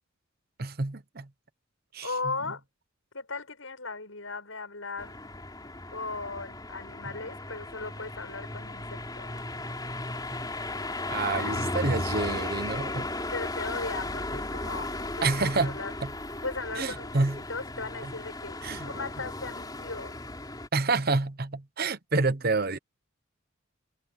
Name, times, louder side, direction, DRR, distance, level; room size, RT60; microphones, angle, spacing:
voice 1, 0.6-1.3 1.9-2.1 11.1-13.1 15.2-16.1 16.8-17.4 18.0-18.1 18.6-18.9 20.7-22.8, right 3 dB, 45° right, 1.0 m, -28 dB
voice 2, 2.0-2.6 3.1-5.2 5.9-9.3 13.3-15.9 16.4-18.6 18.8-20.2, left 3 dB, 75° left, 7.1 m, -37 dB
sound 1, 5.0-20.7, left 2 dB, 20° left, 4.0 m, -36 dB
head